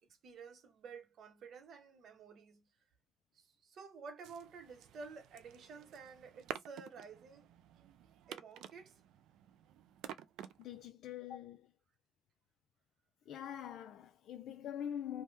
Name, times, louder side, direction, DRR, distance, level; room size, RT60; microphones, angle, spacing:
voice 1, 0.2-2.7 3.3-7.5 8.3-9.0, right 5 dB, 65° right, 1.0 m, -52 dB
sound 1, 4.2-10.9, right 10 dB, 90° right, 0.3 m, -51 dB
voice 2, 10.4-11.7 13.3-15.2, left 9 dB, 75° left, 0.4 m, -44 dB
2.7 x 2.2 x 3.2 m
cardioid pair, 90°, 0 cm